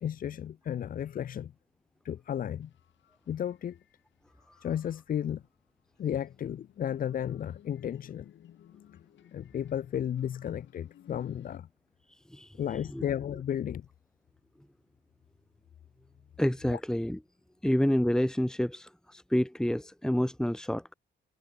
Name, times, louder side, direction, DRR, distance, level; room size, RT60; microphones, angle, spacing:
voice 1, 0.0-1.5 2.0-2.7 3.3-3.8 4.6-5.4 6.0-8.3 9.3-11.7 12.6-13.9 16.7-16.8, left 9 dB, 45° left, 0.5 m, -33 dB
sound 1, 2.6-4.1 4.3-5.3 6.2-11.6, left 11 dB, 70° left, 4.3 m, -58 dB
voice 2, 12.3-13.0 16.4-17.2 17.6-20.9, equal, 5° left, 1.6 m, -29 dB
cardioid pair, 90°, 20 cm